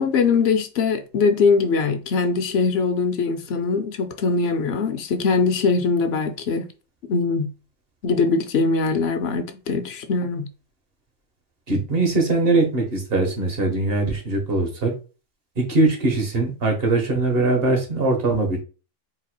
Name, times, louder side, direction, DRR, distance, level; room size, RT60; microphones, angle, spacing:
voice 1, 0.0-6.7 7.1-7.5 8.0-10.5, left 4 dB, 60° left, 0.8 m, -21 dB
voice 2, 11.7-14.9 15.6-18.6, right 2 dB, 50° right, 1.4 m, -21 dB
4.3 x 4.0 x 2.2 m
omnidirectional pair, 1.3 m